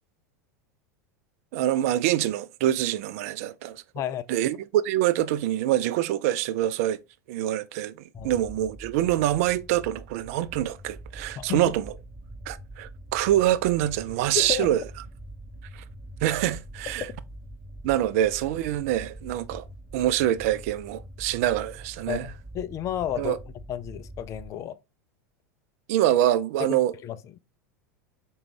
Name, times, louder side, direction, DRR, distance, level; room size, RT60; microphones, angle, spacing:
voice 1, 1.5-3.8 4.3-7.0 7.3-7.9 8.2-11.8 12.5-14.8 15.7-15.8 16.2-17.1 17.8-19.6 19.9-22.3 23.2-23.4 25.9-26.9, right 13 dB, 60° right, 0.3 m, -25 dB
sound 1, 8.1-24.5, right 1 dB, 10° right, 0.9 m, -44 dB
voice 2, 14.3-14.8 17.0-17.1 22.1-23.4 23.7-24.8 26.6-27.2, left 10 dB, 35° left, 0.3 m, -32 dB
4.9 x 2.3 x 3.1 m
hypercardioid pair, 90°, 9 cm